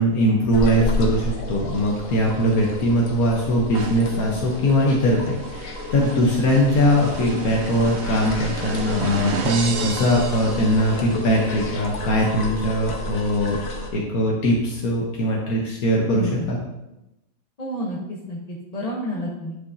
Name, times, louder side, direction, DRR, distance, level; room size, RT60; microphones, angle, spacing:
voice 1, 0.0-13.6 13.9-16.6, equal, 90° left, -2 dB, 1.5 m, -21 dB
sound 1, 0.5-13.9, left 1 dB, 70° left, 1.5 m, -31 dB
sound 2, 3.7-11.3, right 5 dB, 60° right, 0.9 m, -33 dB
voice 2, 16.1-16.5 17.6-19.6, left 1 dB, 30° left, -3 dB, 1.0 m, -30 dB
9.8 x 6.0 x 2.7 m, 0.94 s
omnidirectional pair, 1.5 m